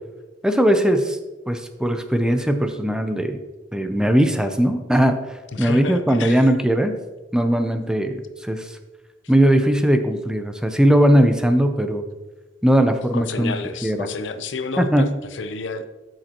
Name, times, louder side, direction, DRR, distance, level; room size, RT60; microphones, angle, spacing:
voice 1, 0.4-1.2 1.5-3.4 3.7-6.9 7.3-8.8 9.3-12.0 12.6-13.5 13.8-14.1 14.8-15.1, right 1 dB, 5° right, 7 dB, 0.5 m, -19 dB
voice 2, 5.5-6.5 13.1-15.9, left 4 dB, 80° left, 9 dB, 0.7 m, -30 dB
12.5 x 6.4 x 3.0 m, 1.1 s
head